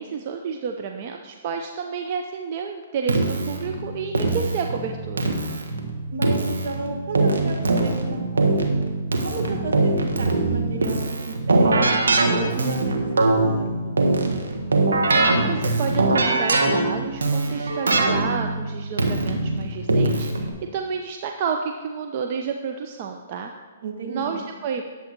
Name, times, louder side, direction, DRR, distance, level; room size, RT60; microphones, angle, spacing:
voice 1, 0.0-5.3 15.5-20.5 20.7-23.5 24.1-24.8, right 6 dB, 45° right, 4 dB, 0.7 m, -30 dB
Keyboard (musical), 3.1-20.5, right 2 dB, 90° right, 1.6 m, -22 dB
voice 2, 6.1-8.7 9.2-12.0 12.3-14.4 23.8-24.5, right 3 dB, 75° right, 2 dB, 1.7 m, -33 dB
10.5 x 7.9 x 4.5 m, 1.3 s
hypercardioid pair, 140°, 0 cm